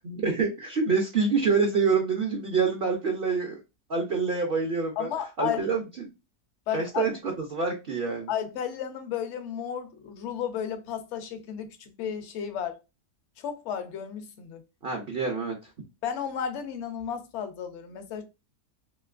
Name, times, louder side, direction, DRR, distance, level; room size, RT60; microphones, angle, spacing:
voice 1, 0.0-3.6 3.9-5.1 5.4-5.8 6.7-8.3 14.8-15.7, right 4 dB, 60° right, 0.6 m, -26 dB
voice 2, 5.0-5.6 6.7-7.1 8.3-12.8 13.4-14.6 16.0-18.2, left 8 dB, 60° left, 0.7 m, -33 dB
3.0 x 2.8 x 2.4 m
omnidirectional pair, 1.7 m